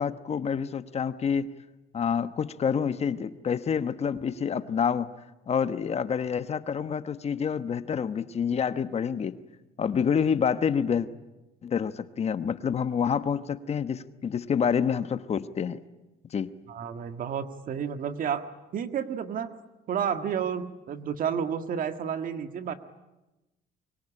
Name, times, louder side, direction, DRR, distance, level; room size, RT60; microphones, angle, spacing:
voice 1, 0.0-1.5 1.9-5.1 5.5-9.4 9.8-11.1 11.6-15.8 16.3-16.5, left 7 dB, 40° left, 12 dB, 1.1 m, -27 dB
voice 2, 16.7-18.4 18.7-19.5 19.9-22.7, right 8 dB, 55° right, 9 dB, 1.8 m, -31 dB
23.5 x 23.5 x 10.0 m, 1.0 s
cardioid pair, 110°, 17 cm